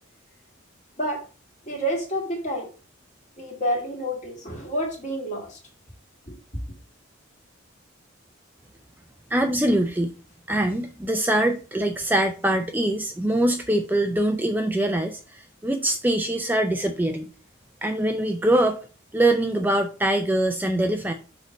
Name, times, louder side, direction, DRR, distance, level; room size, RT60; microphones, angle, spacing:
voice 1, 1.7-2.7 3.4-5.6 6.3-6.4, equal, 35° left, 0 dB, 2.0 m, -28 dB
voice 2, 9.3-10.1 10.5-17.3 17.8-18.8 19.1-21.1, right 1 dB, 10° right, 5 dB, 0.4 m, -23 dB
6.5 x 3.3 x 5.1 m, 0.36 s
head